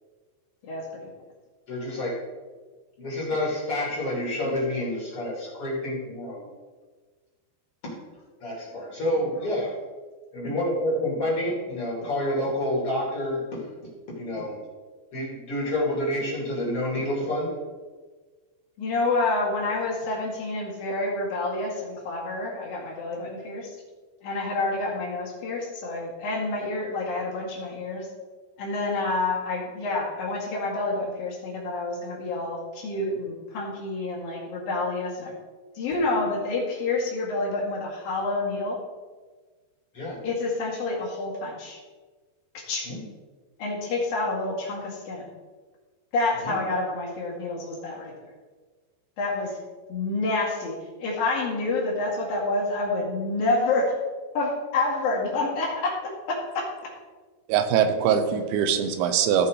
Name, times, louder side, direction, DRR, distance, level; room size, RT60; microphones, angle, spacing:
voice 1, 0.6-1.1 4.5-4.6 9.2-9.5 18.8-23.7 24.2-28.1 28.6-35.3 35.8-38.8 40.2-41.8 42.5-42.9 43.6-45.3 46.1-48.1 49.2-49.6 49.9-54.0 54.4-56.9, left 2 dB, 60° left, -4 dB, 3.5 m, -28 dB
voice 2, 1.7-2.1 3.0-6.4 7.8-7.9 8.4-9.7 10.3-13.6 14.1-14.6 15.1-17.5 39.9-40.2 42.8-43.0 46.4-46.6 57.7-58.1, left 1 dB, 35° left, -5 dB, 3.1 m, -28 dB
voice 3, 57.5-59.5, right 8 dB, 85° right, 8 dB, 3.2 m, -22 dB
15.5 x 5.5 x 4.8 m, 1.4 s
omnidirectional pair, 5.1 m